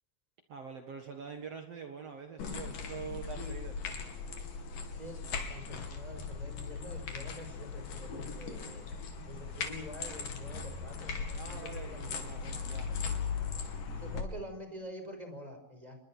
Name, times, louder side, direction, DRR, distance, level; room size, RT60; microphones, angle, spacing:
voice 1, 0.5-3.8 11.4-12.9, right 6 dB, 50° right, 5 dB, 2.6 m, -45 dB
sound 1, 2.4-14.2, left 5 dB, 75° left, 4.4 m, -39 dB
voice 2, 5.0-8.8 9.3-11.6 11.9-12.3 14.0-16.0, equal, 10° right, 6 dB, 5.4 m, -47 dB
29.0 x 21.5 x 6.3 m, 0.81 s
omnidirectional pair, 3.9 m